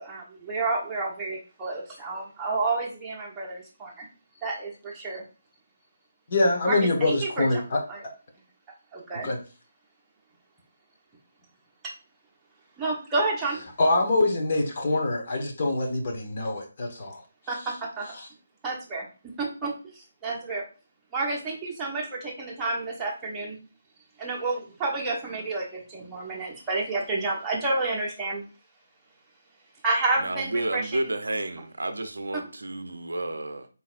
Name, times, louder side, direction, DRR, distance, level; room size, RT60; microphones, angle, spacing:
voice 1, 0.0-4.1 4.4-5.2 6.7-7.6 7.9-8.0 8.9-9.3 11.8-11.9 12.8-13.6 17.5-18.1 18.6-19.1 19.4-20.6 21.1-23.6 24.2-28.4 29.8-31.0 32.3-32.5, right 3 dB, 10° right, 1.1 m, -30 dB
voice 2, 6.3-7.8 9.2-9.4 13.8-17.2 18.2-18.3, left 2 dB, 40° left, 1.1 m, -24 dB
voice 3, 30.2-33.7, right 2 dB, 65° right, 0.5 m, -31 dB
4.2 x 3.9 x 2.5 m
figure-of-eight pair, 150°, 0 cm